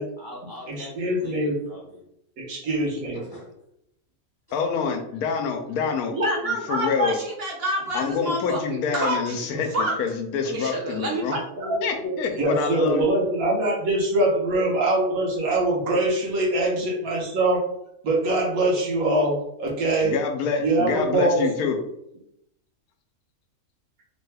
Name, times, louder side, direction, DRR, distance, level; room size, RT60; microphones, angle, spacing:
voice 1, 0.2-2.0 3.1-3.5 4.5-4.6, equal, 25° right, -4 dB, 0.5 m, -43 dB
voice 2, 0.7-1.6 2.4-3.2 12.4-17.7 18.0-20.2 20.6-21.5, right 2 dB, 70° right, -2 dB, 1.4 m, -23 dB
voice 3, 4.5-6.2 6.5-7.2 7.9-11.3 11.8-13.1 20.0-21.8, left 5 dB, 85° left, 4 dB, 1.1 m, -27 dB
voice 4, 6.1-10.0 10.4-12.5, right 1 dB, 50° right, -1 dB, 0.8 m, -28 dB
3.4 x 2.2 x 3.2 m, 0.79 s
omnidirectional pair, 1.6 m